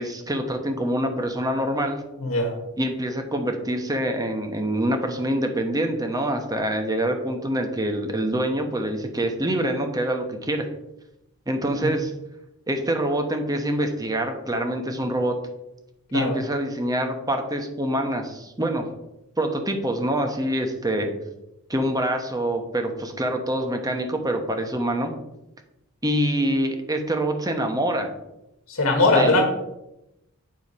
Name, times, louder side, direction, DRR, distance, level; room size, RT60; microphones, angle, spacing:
voice 1, 0.0-2.0 2.8-10.7 11.5-12.1 12.7-15.4 16.1-18.9 19.4-21.1 21.7-25.1 26.0-28.1 29.1-29.4, right 1 dB, 15° right, 5 dB, 1.1 m, -25 dB
voice 2, 2.2-2.5 11.8-11.9 16.1-16.3 28.7-29.4, left 2 dB, 75° left, 1 dB, 1.4 m, -20 dB
8.6 x 4.6 x 5.4 m, 0.90 s
head